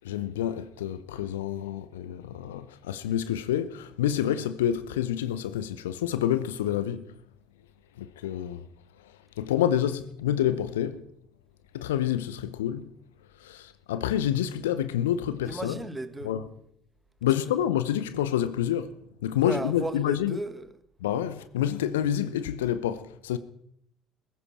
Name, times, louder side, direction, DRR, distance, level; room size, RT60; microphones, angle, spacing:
voice 1, 0.0-7.1 8.0-8.7 9.4-11.0 11.7-12.8 13.4-15.8 16.2-16.5 17.2-18.9 19.2-20.4 21.0-23.4, left 11 dB, 75° left, 0.8 m, -28 dB
voice 2, 15.5-16.3 19.4-20.7, right 2 dB, 15° right, 1.7 m, -35 dB
21.5 x 15.0 x 4.3 m
figure-of-eight pair, 55°, 0 cm